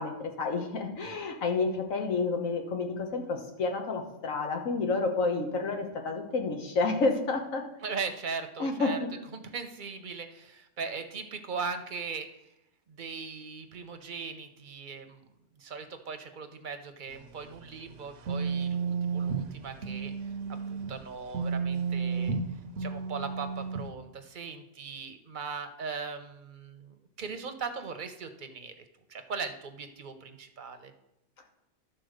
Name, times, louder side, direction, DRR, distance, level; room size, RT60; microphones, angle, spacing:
voice 1, 0.0-7.6 8.6-9.1, left 3 dB, 85° left, 4 dB, 1.6 m, -30 dB
voice 2, 7.8-9.0 9.3-12.5 12.9-15.2 15.6-20.3 20.7-22.3 22.8-28.7 29.1-30.9, right 5 dB, 45° right, 7 dB, 0.8 m, -39 dB
sound 1, 17.2-21.0 21.3-23.9, right 5 dB, 70° right, 1.0 m, -32 dB
11.5 x 4.3 x 6.5 m, 0.87 s
omnidirectional pair, 1.3 m